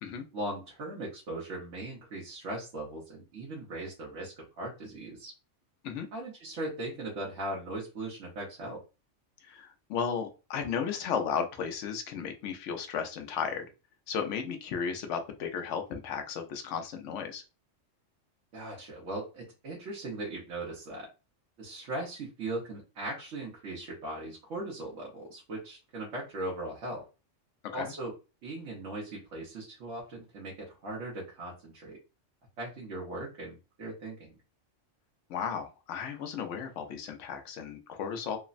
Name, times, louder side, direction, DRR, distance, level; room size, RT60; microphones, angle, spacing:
voice 1, 0.3-5.3 6.1-8.8 18.5-21.1 21.6-27.1 27.7-28.1 28.4-32.0 32.6-34.3, right 2 dB, 75° right, -4 dB, 1.1 m, -39 dB
voice 2, 9.4-13.7 14.1-17.4 27.7-27.9 35.3-38.4, left 7 dB, 80° left, 6 dB, 0.9 m, -34 dB
3.2 x 2.0 x 2.4 m, 0.31 s
omnidirectional pair, 1.3 m